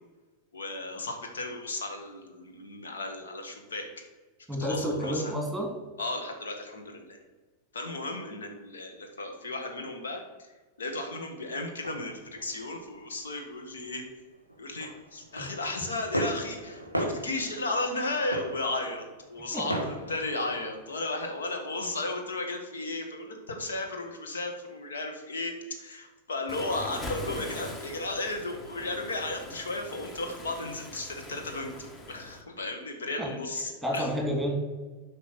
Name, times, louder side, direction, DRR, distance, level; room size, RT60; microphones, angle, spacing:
voice 1, 0.5-3.8 4.6-5.3 6.0-7.2 7.7-10.2 10.8-14.0 14.6-34.1, left 2 dB, 70° left, 4 dB, 1.6 m, -34 dB
voice 2, 4.5-5.7 15.4-15.5 19.5-19.8 33.2-33.3 33.8-34.6, equal, ahead, 1 dB, 2.8 m, -30 dB
sound 1, 11.8-13.1 13.5-14.1 14.3-21.5, equal, 85° left, 1.4 m, -37 dB
Waves surf, 26.5-32.4, left 2 dB, 20° left, 1.3 m, -42 dB
8.5 x 5.4 x 6.1 m, 1.3 s
figure-of-eight pair, 90°, 0 cm